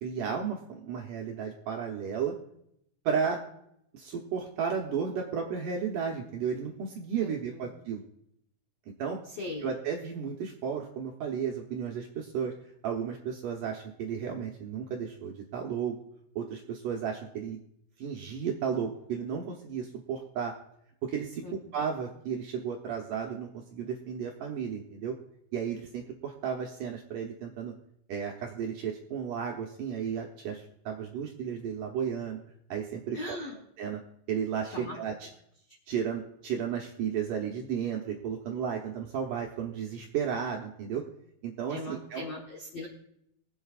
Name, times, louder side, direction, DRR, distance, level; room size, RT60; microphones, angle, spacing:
voice 1, 0.0-2.4 3.1-3.4 3.9-8.0 9.0-9.2 9.6-12.5 12.8-16.0 16.4-17.6 18.0-20.5 21.0-21.4 21.7-25.2 25.5-27.7 28.1-32.4 32.7-33.4 33.8-34.0 34.3-35.3 35.9-41.1 41.4-42.2, right 7 dB, 70° right, 0 dB, 2.0 m, -33 dB
voice 2, 7.2-7.6 9.4-9.7 21.4-21.5 33.1-33.5 34.7-34.9 41.7-42.9, left 2 dB, 70° left, -1 dB, 1.5 m, -39 dB
23.5 x 8.0 x 2.4 m, 0.74 s
omnidirectional pair, 4.9 m